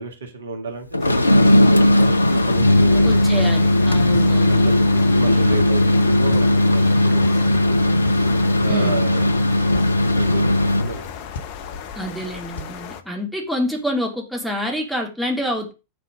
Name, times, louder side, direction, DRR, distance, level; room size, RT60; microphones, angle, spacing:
voice 1, 0.0-3.4 4.1-7.6 7.9-8.0 8.6-9.3 10.2-11.1 11.7-11.9 12.8-12.9, right 2 dB, 65° right, 5 dB, 1.7 m, -31 dB
sound 1, 0.9-11.0, left 1 dB, 85° left, 0.5 m, -17 dB
sound 2, 1.0-13.0, left 8 dB, 45° left, 0.9 m, -36 dB
voice 2, 3.0-4.7 8.7-9.1 11.9-15.7, equal, ahead, 0 dB, 2.6 m, -27 dB
sound 3, 4.1-14.0, left 4 dB, 65° left, 1.3 m, -38 dB
8.5 x 4.2 x 5.0 m, 0.28 s
figure-of-eight pair, 90°, 0 cm